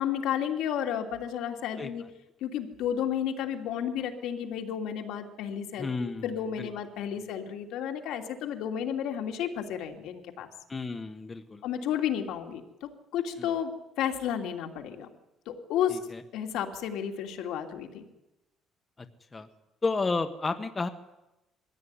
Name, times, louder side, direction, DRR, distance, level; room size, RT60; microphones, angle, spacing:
voice 1, 0.0-2.0 2.4-10.5 11.6-15.1 15.5-16.0 16.3-18.1, left 9 dB, 80° left, 3 dB, 2.8 m, -32 dB
voice 2, 5.8-6.7 10.7-11.6 13.4-13.5 15.9-16.2 19.0-19.1 19.3-19.5 19.8-20.9, left 3 dB, 20° left, 6 dB, 1.3 m, -32 dB
22.5 x 16.0 x 9.8 m, 0.96 s
cardioid pair, 155°, 0 cm